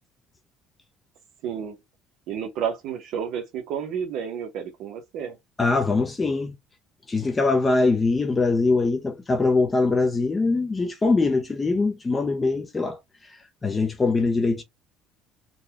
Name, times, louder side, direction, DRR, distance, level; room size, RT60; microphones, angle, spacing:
voice 1, 1.4-1.8 2.3-5.4, right 8 dB, 70° right, 0.9 m, -31 dB
voice 2, 5.6-6.5 7.1-13.0 13.2-13.3 13.6-14.6, left 3 dB, 20° left, 0.6 m, -22 dB
3.9 x 2.2 x 2.9 m
cardioid pair, 145°, 0 cm